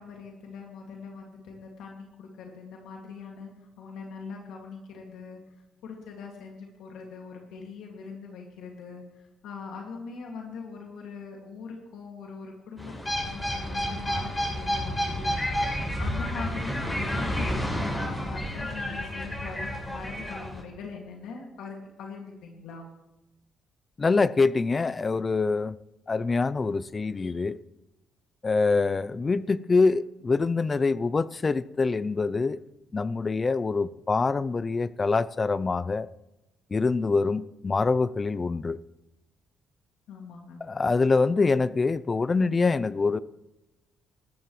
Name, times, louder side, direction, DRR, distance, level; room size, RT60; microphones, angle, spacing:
voice 1, 0.0-3.5 3.8-5.4 5.8-13.0 13.3-15.3 15.7-22.9 40.1-40.6, left 5 dB, 85° left, 2.3 m, -41 dB
sound 1, 12.8-20.6, equal, 15° left, 5.9 m, -30 dB
voice 2, 24.0-25.8 26.1-27.6 28.4-32.6 32.9-36.1 36.7-38.8 40.6-43.2, left 4 dB, 30° left, 0.5 m, -25 dB
20.5 x 13.5 x 3.2 m
cardioid pair, 90°, 0 cm